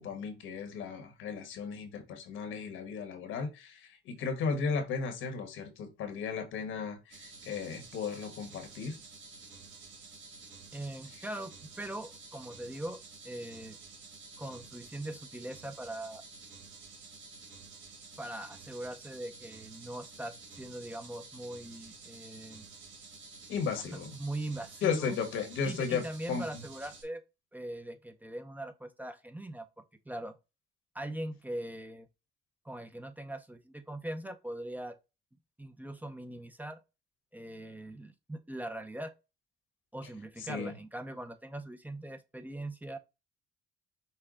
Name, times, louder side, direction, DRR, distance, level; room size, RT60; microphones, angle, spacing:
voice 1, 0.0-9.0 23.5-24.1 24.8-26.6 40.4-40.7, left 5 dB, 85° left, 1.4 m, -35 dB
sound 1, 7.1-27.0, right 4 dB, 70° right, 2.0 m, -51 dB
voice 2, 10.7-11.5 11.8-13.8 14.4-16.2 18.2-22.6 23.9-25.2 25.6-27.2 27.5-29.7 30.1-30.3 30.9-32.1 32.6-35.0 35.6-36.8 37.3-39.1 39.9-43.0, right 1 dB, 10° right, 0.6 m, -41 dB
5.6 x 2.2 x 3.7 m
cardioid pair, 90°, 20 cm